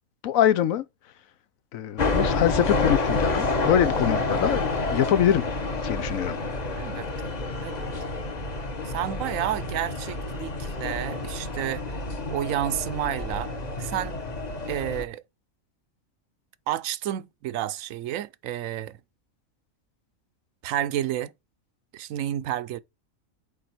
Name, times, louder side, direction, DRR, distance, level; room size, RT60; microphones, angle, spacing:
voice 1, 0.2-0.8 1.7-5.5 5.8-6.4, left 10 dB, 85° left, 1.1 m, -24 dB
sound 1, 2.0-15.0, left 3 dB, 35° left, 1.0 m, -29 dB
voice 2, 6.8-7.4 7.6-7.9 8.8-11.8 12.3-13.5 13.8-14.2 14.7-15.2 16.7-19.0 20.6-21.3 21.9-22.8, right 11 dB, 75° right, 1.0 m, -30 dB
8.6 x 3.8 x 4.4 m
omnidirectional pair, 1.4 m